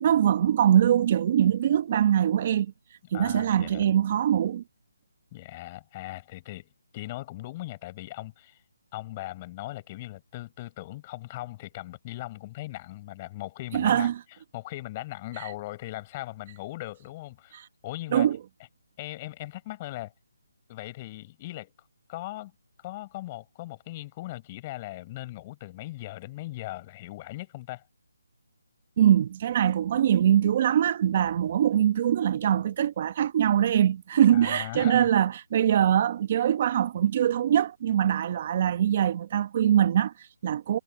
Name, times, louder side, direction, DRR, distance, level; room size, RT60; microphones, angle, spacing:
voice 1, 0.0-2.7 3.1-4.6 13.7-14.1 15.4-15.5 17.5-17.7 18.1-18.4 29.0-40.8, right 10 dB, 35° right, 1.0 m, -23 dB
voice 2, 3.1-3.8 5.3-8.6 8.9-14.1 14.5-18.3 19.0-20.1 20.7-22.5 22.8-27.8 34.3-35.1, left 17 dB, 25° left, 5.1 m, -39 dB
hypercardioid pair, 160°, 0 cm